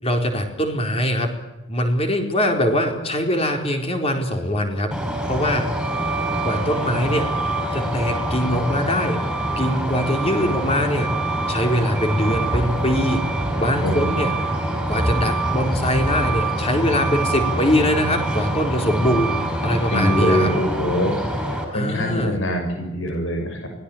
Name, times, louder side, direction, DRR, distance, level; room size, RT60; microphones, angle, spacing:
voice 1, 0.0-1.3 1.7-4.9 5.2-5.7 6.4-7.3 7.7-9.2 9.6-11.1 11.5-13.2 13.6-14.3 14.9-20.5 21.7-22.4, equal, 30° left, 3 dB, 4.3 m, -22 dB
Truck, 4.9-21.6, right 1 dB, 5° right, 5.8 m, -24 dB
voice 2, 13.8-14.2 19.9-21.2 21.5-23.7, left 1 dB, 65° left, 4 dB, 7.0 m, -24 dB
24.5 x 18.5 x 8.7 m, 1.0 s
head